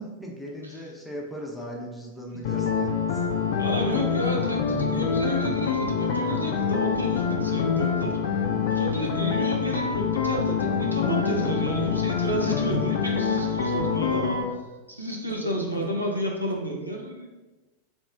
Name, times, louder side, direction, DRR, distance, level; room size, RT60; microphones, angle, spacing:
voice 1, 0.0-3.2 13.9-14.5, equal, 5° left, -1 dB, 0.8 m, -38 dB
sound 1, 2.4-14.4, left 6 dB, 55° left, 0.5 m, -26 dB
voice 2, 3.6-8.1 8.7-14.4 14.9-17.3, equal, 85° right, -1 dB, 0.7 m, -31 dB
3.4 x 3.1 x 3.8 m, 1.1 s
figure-of-eight pair, 90°, 0 cm